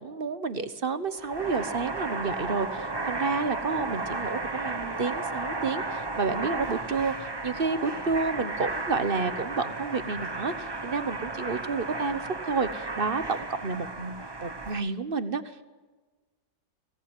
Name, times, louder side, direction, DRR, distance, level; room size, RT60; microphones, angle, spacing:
voice 1, 0.0-12.2 12.5-15.6, right 4 dB, 35° right, 12 dB, 1.2 m, -30 dB
sound 1, 1.2-14.8, right 3 dB, 20° right, 0.8 m, -34 dB
23.5 x 18.0 x 9.3 m, 1.3 s
omnidirectional pair, 1.9 m